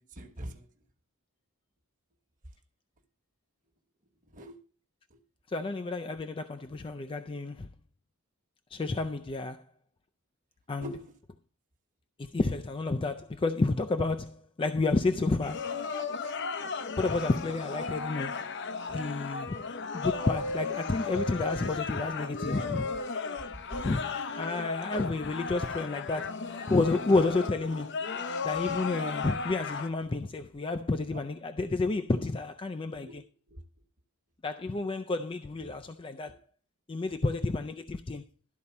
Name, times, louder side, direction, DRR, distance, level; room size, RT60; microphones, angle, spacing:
voice 1, 0.1-0.7 4.2-4.6 5.1-5.2 10.8-11.1 20.8-20.9 23.4-23.8 24.9-25.1 31.1-31.2 33.0-33.2 33.5-33.6 35.6-35.8 36.3-36.4, right 1 dB, 35° right, 1.3 m, -44 dB
voice 2, 5.5-7.7 8.7-9.6 10.7-10.9 12.2-15.7 17.0-18.4 18.9-19.6 19.9-22.9 23.8-28.0 28.4-33.2 34.4-36.3 36.9-38.2, left 3 dB, 25° left, 0.4 m, -30 dB
sound 1, 15.4-29.9, left 4 dB, 55° left, 0.7 m, -35 dB
12.5 x 4.2 x 6.9 m
head